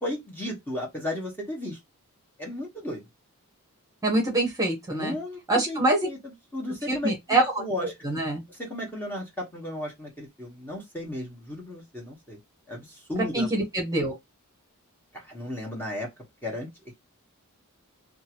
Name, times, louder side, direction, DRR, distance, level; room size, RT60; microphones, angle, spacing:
voice 1, 0.0-1.8 2.4-3.0 4.9-5.4 5.7-7.1 7.6-7.9 8.6-12.4 12.7-13.5 15.1-16.1 16.4-16.7, left 1 dB, 10° left, 1.1 m, -34 dB
voice 2, 4.0-5.2 5.5-6.1 6.9-8.4 13.3-14.1, right 2 dB, 15° right, 1.0 m, -25 dB
2.8 x 2.4 x 2.8 m
head